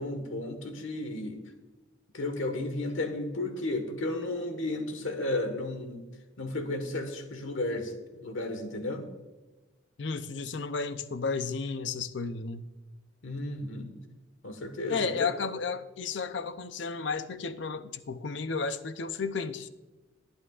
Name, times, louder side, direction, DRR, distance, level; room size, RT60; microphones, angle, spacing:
voice 1, 0.0-1.4 2.1-6.0 6.4-9.0 13.2-13.9 14.4-15.3, left 2 dB, 90° left, 6 dB, 1.5 m, -33 dB
voice 2, 10.0-12.7 14.9-19.7, left 4 dB, 65° left, 11 dB, 0.6 m, -33 dB
22.0 x 8.9 x 2.4 m, 1.2 s
head